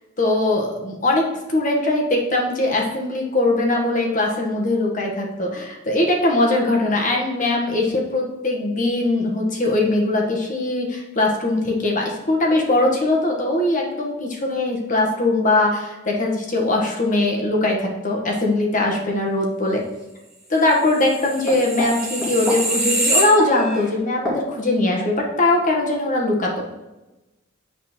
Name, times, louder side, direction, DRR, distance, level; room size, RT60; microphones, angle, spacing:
voice 1, 0.2-19.8 20.5-26.7, left 2 dB, 40° left, -1 dB, 1.6 m, -21 dB
sound 1, 20.9-23.9 24.2-24.4, right 1 dB, 5° right, 2.1 m, -24 dB
8.7 x 4.2 x 4.5 m, 1.0 s
head